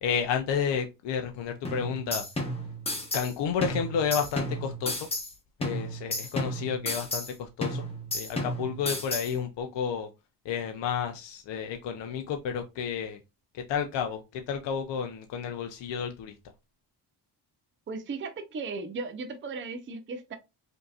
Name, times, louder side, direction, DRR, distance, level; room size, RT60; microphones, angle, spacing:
voice 1, 0.0-2.2 3.1-5.1 5.6-7.8 8.1-10.1 10.5-13.2 13.7-16.3, left 7 dB, 80° left, 0.7 m, -31 dB
sound 1, 1.6-3.3 3.6-5.3 5.6-7.3 7.6-9.3, left 1 dB, 15° left, 1.0 m, -33 dB
voice 2, 17.9-20.4, right 4 dB, 30° right, 0.6 m, -36 dB
5.3 x 2.8 x 2.4 m
cardioid pair, 155°, 42 cm